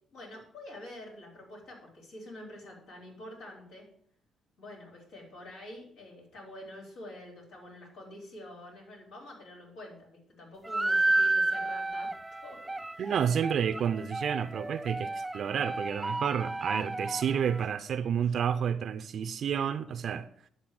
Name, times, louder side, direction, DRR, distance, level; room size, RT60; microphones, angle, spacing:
voice 1, 0.1-3.9 4.6-12.1 12.4-13.2, left 1 dB, 85° left, 4.3 m, -47 dB
sound 1, 10.6-17.7, right 2 dB, 10° right, 0.3 m, -32 dB
voice 2, 13.0-20.3, right 8 dB, 60° right, 0.5 m, -30 dB
11.0 x 4.0 x 7.7 m
cardioid pair, 90°, 0 cm